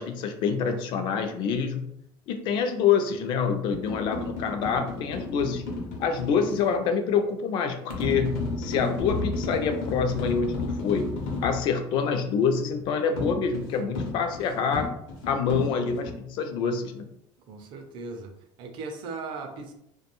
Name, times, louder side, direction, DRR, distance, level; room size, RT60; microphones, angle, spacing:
voice 1, 0.0-1.9 2.3-5.6 6.0-11.1 11.4-14.9 15.3-17.0, left 6 dB, 50° left, 7 dB, 0.3 m, -26 dB
sound 1, 3.7-6.6 7.9-11.6 13.2-16.1, left 3 dB, 85° left, 0.7 m, -32 dB
voice 2, 17.5-19.7, right 4 dB, 50° right, 5 dB, 0.5 m, -38 dB
2.3 x 2.2 x 2.9 m, 0.77 s
cardioid pair, 165°, 11 cm